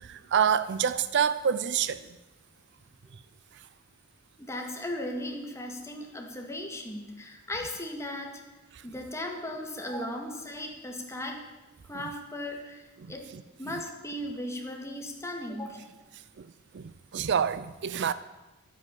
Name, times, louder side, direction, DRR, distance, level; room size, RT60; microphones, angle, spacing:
voice 1, 0.0-2.0 3.5-3.7 8.7-8.9 9.9-10.1 11.9-12.0 13.0-13.7 16.1-16.5 16.7-18.1, right 7 dB, 50° right, 0.4 m, -28 dB
voice 2, 4.4-8.4 8.8-11.4 11.9-13.3 13.6-15.9, left 1 dB, 15° left, 1.9 m, -37 dB
12.0 x 9.6 x 8.3 m
head